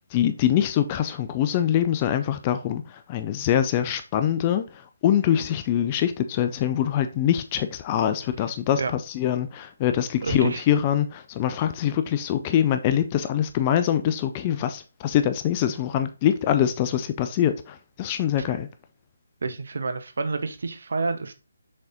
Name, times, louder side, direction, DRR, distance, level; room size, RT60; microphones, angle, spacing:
voice 1, 0.1-2.8 3.1-4.6 5.0-18.7, left 10 dB, 25° left, 0.5 m, -24 dB
voice 2, 10.2-10.6 19.4-21.3, right 4 dB, 65° right, 0.9 m, -28 dB
6.6 x 4.1 x 3.7 m
figure-of-eight pair, 150°, 0 cm